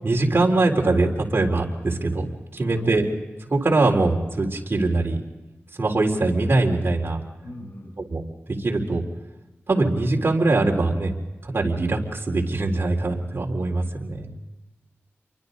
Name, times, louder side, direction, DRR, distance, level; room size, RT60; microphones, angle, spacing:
voice 1, 0.0-2.2 2.5-3.1 3.5-5.2 5.8-7.2 8.1-8.2 8.5-9.0 9.7-11.1 11.4-14.3, right 2 dB, 50° right, 0 dB, 4.0 m, -22 dB
voice 2, 2.6-2.9 7.4-8.0, left 1 dB, 70° left, 3 dB, 5.2 m, -40 dB
29.5 x 24.0 x 4.1 m, 1.1 s
wide cardioid pair, 100°, 5 cm